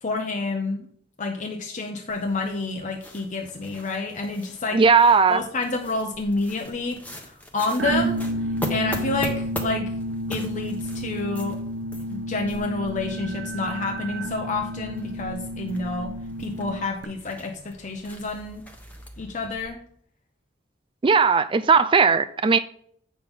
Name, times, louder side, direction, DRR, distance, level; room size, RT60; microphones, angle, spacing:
voice 1, 0.0-0.9 1.2-4.8 5.3-7.0 7.2-8.2 8.7-9.9 10.3-11.6 12.1-16.1 16.4-18.6 19.2-19.8, left 3 dB, 45° left, 0.9 m, -29 dB
sound 1, 2.1-19.7, equal, 10° left, 1.1 m, -41 dB
voice 2, 4.7-5.4 21.0-22.6, right 5 dB, 30° right, 0.3 m, -17 dB
sound 2, 7.8-17.0, right 1 dB, 65° right, 0.7 m, -31 dB
8.5 x 6.1 x 3.6 m
head